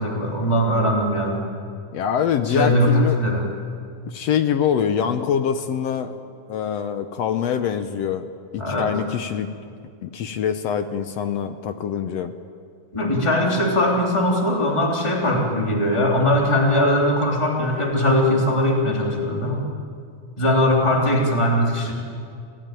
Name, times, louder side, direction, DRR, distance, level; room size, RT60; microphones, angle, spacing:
voice 1, 0.0-1.4 2.5-3.5 8.6-8.9 12.9-19.6 20.4-21.9, left 1 dB, 10° left, -1 dB, 3.1 m, -20 dB
voice 2, 1.9-3.2 4.1-6.2 6.5-8.3 8.5-9.5 10.0-12.3, left 8 dB, 70° left, 9 dB, 1.6 m, -24 dB
29.0 x 16.5 x 9.1 m, 2.3 s
omnidirectional pair, 3.8 m